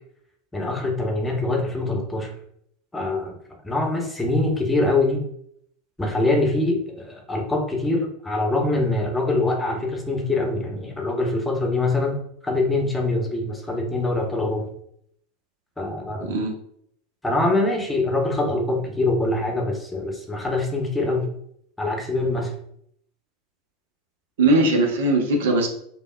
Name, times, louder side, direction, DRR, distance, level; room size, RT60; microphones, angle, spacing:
voice 1, 0.5-2.3 2.9-3.4 3.6-5.2 6.0-14.7 15.8-16.4 17.2-21.3 21.8-22.5, left 2 dB, 10° left, 1 dB, 0.8 m, -24 dB
voice 2, 16.2-16.5 24.4-25.7, right 2 dB, 65° right, 2 dB, 0.7 m, -19 dB
5.1 x 2.2 x 2.2 m, 0.69 s
figure-of-eight pair, 80°, 0 cm